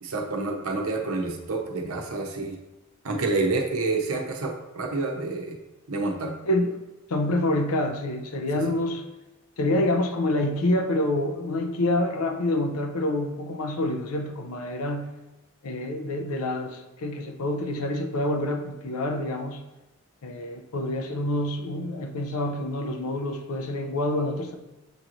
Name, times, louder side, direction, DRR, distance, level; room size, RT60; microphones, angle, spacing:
voice 1, 0.0-2.6 3.0-5.6 5.9-6.3, right 3 dB, 75° right, 2 dB, 0.7 m, -28 dB
voice 2, 7.1-9.0 9.6-15.1 15.6-19.6 20.2-24.6, left 1 dB, 85° left, 6 dB, 0.6 m, -27 dB
6.8 x 3.0 x 2.5 m, 1.1 s
head